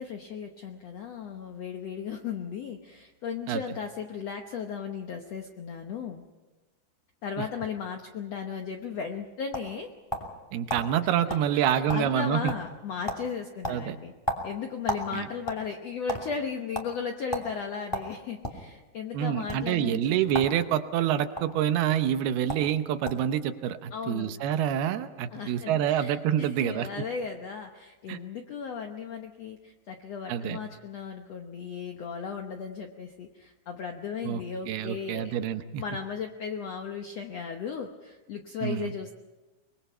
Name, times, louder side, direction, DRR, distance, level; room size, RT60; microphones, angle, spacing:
voice 1, 0.0-6.2 7.2-9.9 11.5-14.1 14.4-20.4 23.9-24.3 25.3-35.3 35.8-39.1, left 6 dB, 75° left, 4 dB, 1.5 m, -36 dB
sound 1, 9.0-10.4 10.7-10.9 11.3-11.5 11.7-12.2 12.5-12.8 13.1-13.3 13.6-15.1 15.4-16.2 16.7-16.9 17.3-17.5 17.9-18.6 19.4-19.6 20.3-20.6 20.8-21.4 22.2-22.3 22.5-22.7 23.0-23.3, equal, 10° left, 1.8 m, -33 dB
voice 2, 10.5-12.5 13.7-14.0 15.1-15.3 19.1-27.0 28.1-28.2 30.3-30.6 34.2-35.8 38.6-38.9, right 10 dB, 80° right, 10 dB, 2.9 m, -27 dB
24.0 x 22.0 x 5.7 m, 1.2 s
omnidirectional pair, 4.5 m